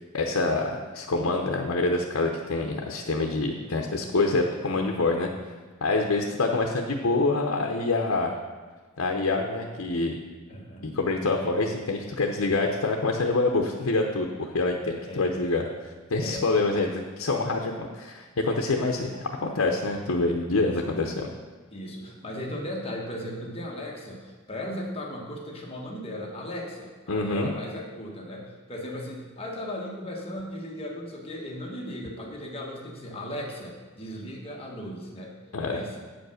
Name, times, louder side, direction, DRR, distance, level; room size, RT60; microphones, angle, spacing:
voice 1, 0.1-5.3 5.8-8.3 9.0-10.2 10.8-15.7 16.1-21.3 27.1-27.5 35.5-35.8, left 3 dB, 75° left, 2 dB, 0.7 m, -26 dB
voice 2, 10.5-11.0 15.0-15.2 16.2-16.8 20.6-20.7 21.7-35.3 35.7-36.0, left 1 dB, 30° left, -1 dB, 1.3 m, -37 dB
8.5 x 5.2 x 6.3 m, 1.4 s
head